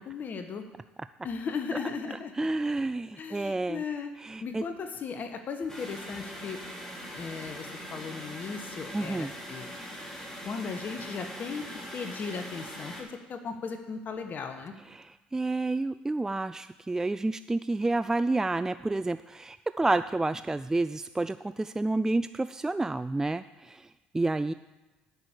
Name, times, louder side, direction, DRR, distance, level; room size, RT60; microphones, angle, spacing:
voice 1, 0.1-0.6 1.2-2.5 3.1-4.1 4.4-6.7 7.1-9.7 10.4-11.7 11.9-14.7, left 5 dB, 45° left, 7 dB, 1.2 m, -37 dB
voice 2, 2.4-3.8 4.2-4.6 8.9-9.3 15.0-15.1 15.3-23.8 24.1-24.5, right 2 dB, 15° right, 13 dB, 0.3 m, -29 dB
sound 1, 5.7-13.0, equal, 15° left, 3.6 m, -41 dB
9.5 x 6.2 x 8.1 m, 1.2 s
hypercardioid pair, 65°, 4 cm